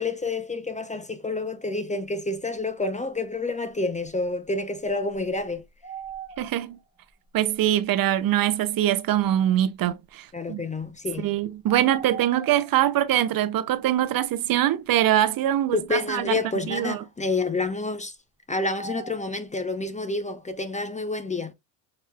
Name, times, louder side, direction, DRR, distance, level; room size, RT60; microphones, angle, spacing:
voice 1, 0.0-5.6 10.3-11.3 15.7-18.1 18.5-21.5, left 3 dB, 15° left, 0.6 m, -29 dB
sound 1, 4.0-4.1 4.9-6.8 7.5-7.6 9.2-9.3 11.7-12.8 18.6-19.4, right 6 dB, 10° right, 1.4 m, -40 dB
voice 2, 6.4-6.8 7.3-10.6 11.2-16.4 16.7-17.0, right 12 dB, 45° right, 0.6 m, -23 dB
6.4 x 3.0 x 2.3 m
supercardioid pair, 75°, 48 cm